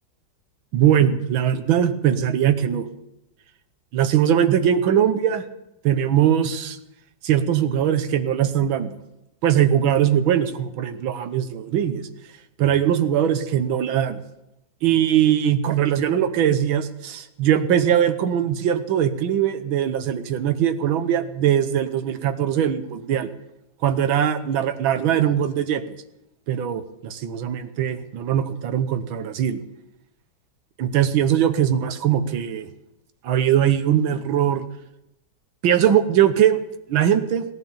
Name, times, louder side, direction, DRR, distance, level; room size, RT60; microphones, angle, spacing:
voice 1, 0.7-2.9 3.9-5.4 5.8-6.8 7.2-9.0 9.4-12.1 12.6-14.2 14.8-23.3 23.8-25.8 26.5-29.6 30.8-32.7 33.2-34.6 35.6-36.6 36.9-37.4, right 10 dB, 75° right, 9 dB, 1.8 m, -21 dB
17.5 x 10.5 x 7.2 m, 0.88 s
omnidirectional pair, 2.2 m